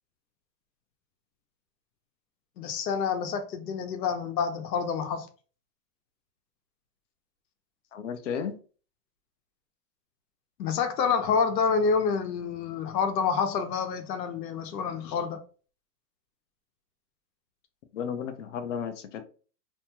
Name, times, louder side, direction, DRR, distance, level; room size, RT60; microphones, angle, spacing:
voice 1, 2.6-5.3 10.6-15.4, left 6 dB, 80° left, 0.8 m, -28 dB
voice 2, 7.9-8.6 17.9-19.2, left 7 dB, 50° left, 0.5 m, -33 dB
2.6 x 2.2 x 2.9 m
supercardioid pair, 170°, 49 cm